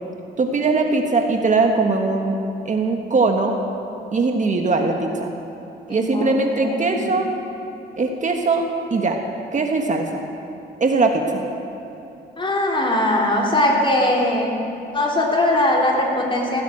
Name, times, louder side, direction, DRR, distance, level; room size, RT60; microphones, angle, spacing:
voice 1, 0.4-2.4 2.6-3.5 4.1-5.3 5.9-7.3 8.0-9.2 9.5-10.2 10.8-11.5, right 3 dB, 40° right, 3 dB, 1.5 m, -20 dB
voice 2, 5.9-7.0 12.4-14.6 14.9-16.6, left 1 dB, 25° left, -2 dB, 3.6 m, -20 dB
17.5 x 9.6 x 8.7 m, 2.9 s
cardioid pair, 90°, 20 cm